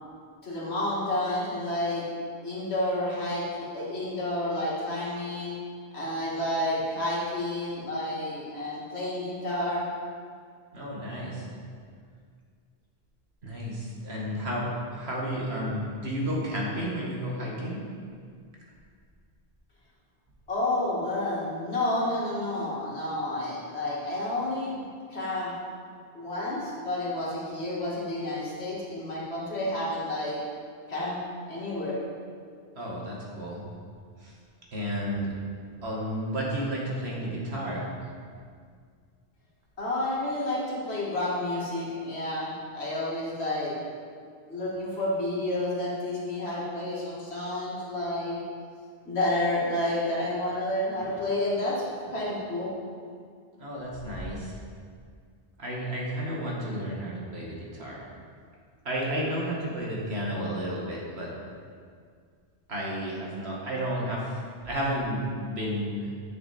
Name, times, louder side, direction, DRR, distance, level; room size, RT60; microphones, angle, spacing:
voice 1, 0.4-2.0 2.4-5.6 5.9-9.9 20.5-25.5 26.1-30.4 30.9-31.2 31.5-32.0 39.8-43.8 44.5-48.4 49.0-51.8 52.1-52.7, left 1 dB, 80° left, -6 dB, 2.5 m, -30 dB
voice 2, 10.7-11.5 13.4-17.8 32.8-33.6 34.2-34.3 34.7-35.3 35.8-37.9 53.6-54.6 55.6-58.0 58.8-61.3 62.7-64.4 64.6-66.1, equal, 75° right, -4 dB, 2.1 m, -32 dB
10.0 x 6.7 x 4.3 m, 2.1 s
omnidirectional pair, 1.1 m